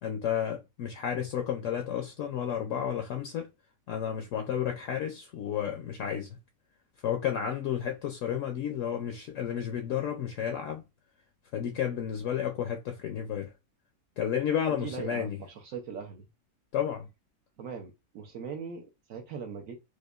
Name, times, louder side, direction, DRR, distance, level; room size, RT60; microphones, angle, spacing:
voice 1, 0.0-3.5 3.9-6.4 7.0-10.8 11.5-13.5 14.2-15.4 16.7-17.1, left 9 dB, 70° left, 0.8 m, -32 dB
voice 2, 14.7-16.3 17.6-19.8, right 6 dB, 70° right, 1.0 m, -40 dB
4.9 x 2.1 x 2.3 m
omnidirectional pair, 1.6 m